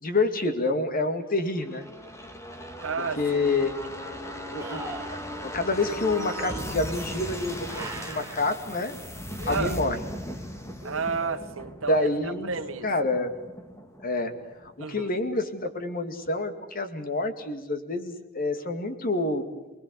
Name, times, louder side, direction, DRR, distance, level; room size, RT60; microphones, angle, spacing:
voice 1, 0.0-1.9 3.0-3.7 4.5-9.0 9.5-10.0 11.9-12.6 12.8-13.3 14.0-14.4 14.6-19.4, left 2 dB, 45° left, 2.3 m, -28 dB
sound 1, 1.5-15.0 15.3-15.4, equal, 15° left, 2.1 m, -38 dB
voice 2, 2.8-3.2 9.5-9.8 10.8-12.1 12.4-12.9 14.8-15.1, right 4 dB, 70° right, 1.7 m, -31 dB
sound 2, 3.0-3.1 4.6-5.2 6.3-6.6 7.7-8.4 9.4-9.6 10.8-11.5 14.6-14.7, right 3 dB, 15° right, 2.2 m, -40 dB
29.0 x 20.5 x 8.4 m
head